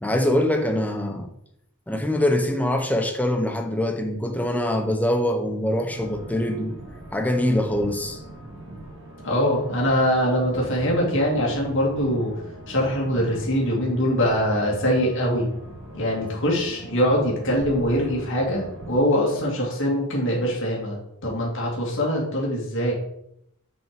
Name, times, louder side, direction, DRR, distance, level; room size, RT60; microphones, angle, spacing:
voice 1, 0.0-1.3 1.9-6.8 7.1-8.2, left 1 dB, 5° left, 0.9 m, -23 dB
sound 1, 5.9-19.0, right 1 dB, 65° right, 1.5 m, -41 dB
voice 2, 9.2-12.3 12.7-15.5 15.9-22.9, equal, 60° left, 2.4 m, -23 dB
6.3 x 5.4 x 5.2 m
head